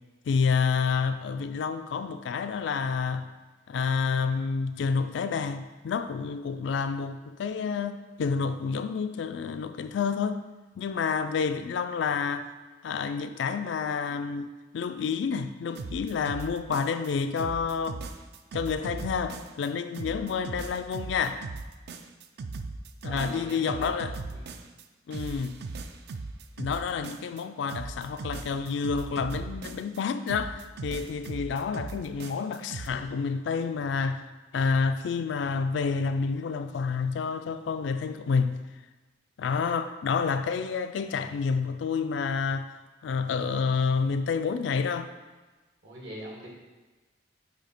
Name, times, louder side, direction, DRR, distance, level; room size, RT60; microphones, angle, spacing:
voice 1, 0.3-3.3 3.7-10.5 10.8-12.5 12.8-14.5 14.7-18.0 18.5-21.5 23.0-24.2 25.1-25.6 26.6-34.3 34.5-38.6 39.4-42.7 43.0-45.1, left 5 dB, 65° left, 0.3 m, -29 dB
sound 1, 15.7-17.1 17.4-19.7 19.9-24.8 25.1-27.4 27.7-30.0 30.3-32.9, right 3 dB, 55° right, 0.4 m, -38 dB
voice 2, 23.0-24.0 24.3-24.5 45.8-46.5, right 1 dB, 75° right, 1.7 m, -42 dB
8.0 x 2.8 x 4.3 m
head